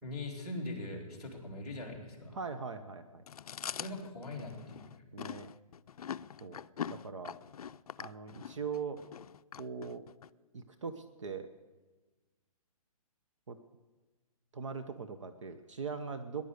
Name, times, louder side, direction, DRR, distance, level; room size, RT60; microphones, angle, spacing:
voice 1, 0.0-2.4 3.8-5.0, left 2 dB, ahead, -10 dB, 2.6 m, -41 dB
voice 2, 2.3-3.2 5.1-5.5 6.4-6.6 6.9-7.4 8.0-9.0 9.6-10.0 10.5-11.5 13.5-13.6 14.5-16.4, right 5 dB, 55° right, 9 dB, 1.0 m, -40 dB
Chewing mastication, 3.3-10.3, left 8 dB, 75° left, 0.5 m, -43 dB
20.0 x 11.0 x 6.6 m, 1.3 s
hypercardioid pair, 175°, 19 cm